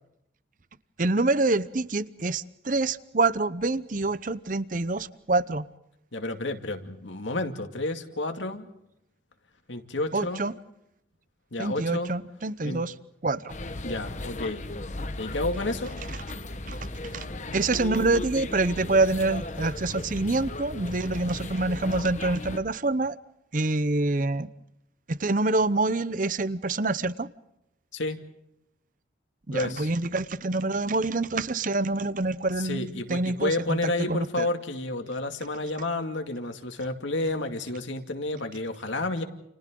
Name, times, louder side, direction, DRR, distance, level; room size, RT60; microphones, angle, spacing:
voice 1, 1.0-5.7 10.1-10.5 11.6-12.9 13.2-13.5 16.7-16.8 17.1-17.3 17.5-23.2 23.5-24.5 25.1-27.3 29.5-34.5, right 2 dB, 45° right, 0.8 m, -26 dB
voice 2, 6.1-8.6 9.7-10.4 11.5-12.1 12.6-12.8 13.8-14.7 15.2-15.9 27.9-28.2 29.5-29.9 32.6-39.2, left 2 dB, 80° left, 2.3 m, -30 dB
sound 1, 13.5-22.6, left 2 dB, 40° left, 1.2 m, -36 dB
30.0 x 29.5 x 3.9 m
head